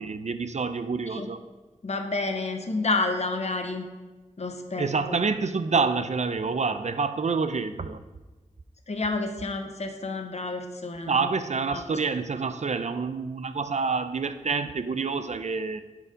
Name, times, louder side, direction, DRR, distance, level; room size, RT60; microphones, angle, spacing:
voice 1, 0.0-1.4 4.8-8.0 11.1-15.8, right 4 dB, 60° right, 11 dB, 0.6 m, -27 dB
voice 2, 1.8-3.9 4.4-5.2 8.9-11.3 11.7-11.8, left 3 dB, 55° left, 5 dB, 0.9 m, -30 dB
10.0 x 4.8 x 5.1 m, 1.2 s
wide cardioid pair, 65°, 14 cm